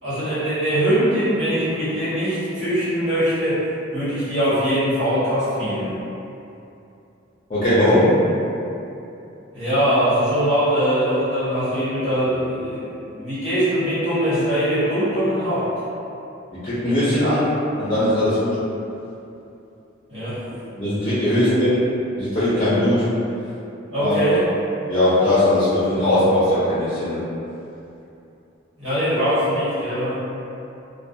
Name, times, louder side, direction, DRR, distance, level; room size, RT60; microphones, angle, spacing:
voice 1, 0.0-3.6 3.9-6.0 9.5-15.7 20.1-20.4 23.9-24.5 28.8-30.2, equal, 80° right, -14 dB, 1.2 m, -22 dB
voice 2, 7.5-8.1 16.6-17.5 17.8-18.5 20.7-21.7 22.2-23.1 24.0-24.2 24.9-27.2, left 1 dB, 30° left, -12 dB, 0.5 m, -19 dB
2.3 x 2.1 x 2.6 m, 2.7 s
head